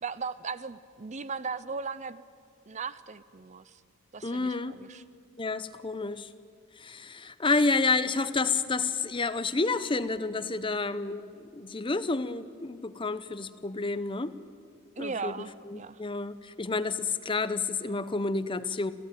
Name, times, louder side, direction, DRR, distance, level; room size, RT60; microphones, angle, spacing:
voice 1, 0.0-2.2 2.7-3.8 4.1-5.0 15.0-16.0, right 4 dB, 35° right, 15 dB, 0.6 m, -37 dB
voice 2, 4.2-4.8 5.4-6.3 6.8-14.3 15.0-15.3 15.7-18.9, left 3 dB, 25° left, 13 dB, 0.7 m, -30 dB
27.0 x 16.5 x 9.3 m, 2.4 s
head